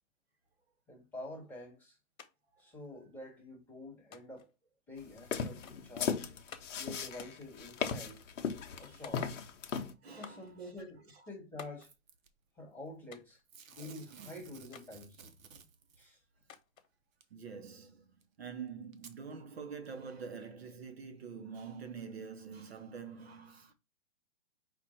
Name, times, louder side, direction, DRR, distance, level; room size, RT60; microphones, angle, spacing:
voice 1, 0.9-2.0 2.6-4.5 4.9-6.3 6.7-8.2 8.8-9.4 10.0-11.9 12.5-13.4 13.7-15.2 15.9-16.2, left 1 dB, 5° left, 0.7 m, -48 dB
sound 1, 2.2-2.3 2.6-3.3 4.1-4.5 5.6-5.9 6.5-6.9 7.9-8.3 9.0-9.6 10.2-10.5 11.6-11.9 13.1-13.4 14.7-14.9 16.5-16.9, left 7 dB, 80° left, 1.1 m, -52 dB
sound 2, 5.2-9.9, left 6 dB, 60° left, 0.8 m, -36 dB
voice 2, 8.8-9.1 10.0-10.5 17.3-18.1 18.4-23.7, right 6 dB, 50° right, 0.8 m, -46 dB
Packing tape duct tape / Tearing, 11.8-12.3 13.5-16.1 17.2-17.3 18.2-18.3 18.9-19.2 19.8-19.9, right 6 dB, 75° right, 0.9 m, -54 dB
5.0 x 2.5 x 4.1 m
hypercardioid pair, 175°, 41 cm